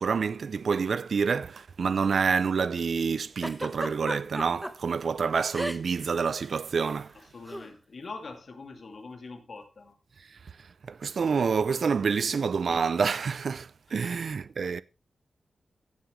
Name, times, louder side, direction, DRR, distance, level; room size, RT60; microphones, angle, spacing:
voice 1, 0.0-7.1 10.9-14.8, right 5 dB, 60° right, 0.5 m, -27 dB
Giggle, 3.4-4.7 5.5-6.1 6.3-6.5 7.5-7.7, equal, 5° right, 1.1 m, -34 dB
voice 2, 7.1-10.0 14.0-14.3, left 3 dB, 55° left, 2.4 m, -44 dB
16.0 x 7.5 x 3.2 m
wide cardioid pair, 115°, 0 cm